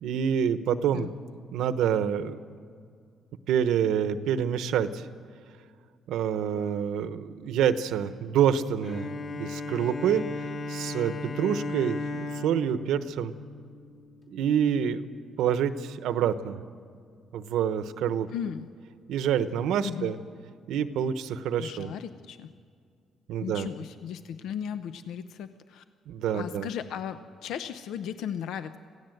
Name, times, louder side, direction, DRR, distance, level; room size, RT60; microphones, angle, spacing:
voice 1, 0.0-1.1 1.5-2.4 3.5-5.1 6.1-13.3 14.3-15.1 15.4-16.6 17.3-18.3 19.1-20.2 20.7-21.9 23.3-23.7 26.1-26.7, right 8 dB, 85° right, 12 dB, 1.0 m, -27 dB
Bowed string instrument, 8.8-14.3, left 3 dB, 50° left, 3.0 m, -36 dB
voice 2, 18.3-18.7 19.8-20.1 21.6-22.5 23.4-25.8 26.3-28.8, left 8 dB, 85° left, 10 dB, 0.7 m, -36 dB
26.0 x 16.0 x 7.9 m, 2.2 s
cardioid pair, 90°, 0 cm